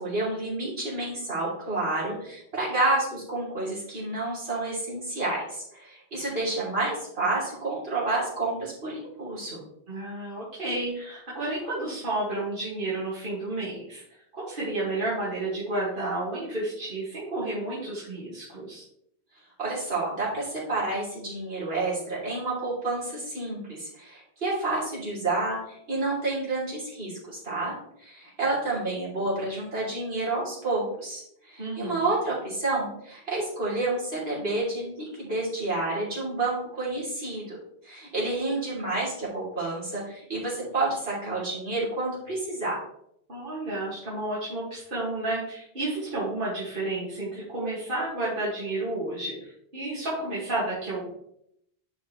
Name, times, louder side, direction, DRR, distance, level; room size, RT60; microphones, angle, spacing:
voice 1, 0.0-9.6 19.6-27.7 28.0-37.6 37.8-42.8, right 2 dB, 80° right, -7 dB, 3.4 m, -29 dB
voice 2, 9.9-14.0 14.3-18.8 31.6-32.2 43.3-51.1, right 2 dB, 60° right, -7 dB, 2.2 m, -31 dB
10.0 x 5.2 x 3.2 m, 0.74 s
omnidirectional pair, 1.0 m